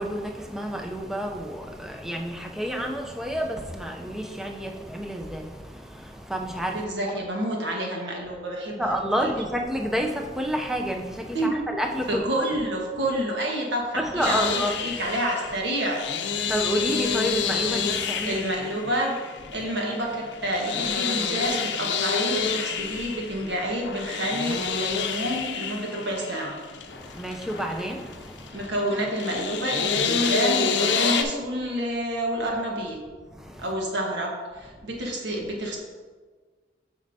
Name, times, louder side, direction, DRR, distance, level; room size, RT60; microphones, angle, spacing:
voice 1, 0.0-6.9 8.8-12.2 14.0-14.8 16.4-18.4 26.9-28.7 33.3-33.6, equal, ahead, 2 dB, 0.5 m, -29 dB
voice 2, 6.7-9.4 11.3-11.5 12.1-16.0 18.2-19.1 19.5-26.6 28.5-33.0 33.6-35.8, right 1 dB, 90° right, 0 dB, 1.3 m, -29 dB
sound 1, 14.2-31.2, left 6 dB, 85° left, 0.6 m, -28 dB
8.5 x 5.2 x 2.7 m, 1.5 s
head